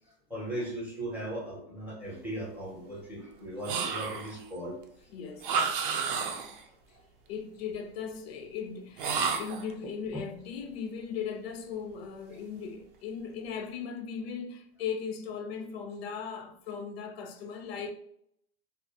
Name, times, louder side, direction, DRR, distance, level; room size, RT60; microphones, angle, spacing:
voice 1, 0.3-4.8 6.0-6.2 6.7-6.8 10.1-10.2, right 1 dB, 5° right, 0.6 m, -38 dB
sound 1, 3.6-4.4 5.4-6.6 9.0-9.7, right 6 dB, 55° right, 0.4 m, -31 dB
voice 2, 5.1-5.5 7.3-17.9, left 6 dB, 70° left, 0.5 m, -38 dB
2.3 x 2.0 x 2.7 m
supercardioid pair, 155°, 32 cm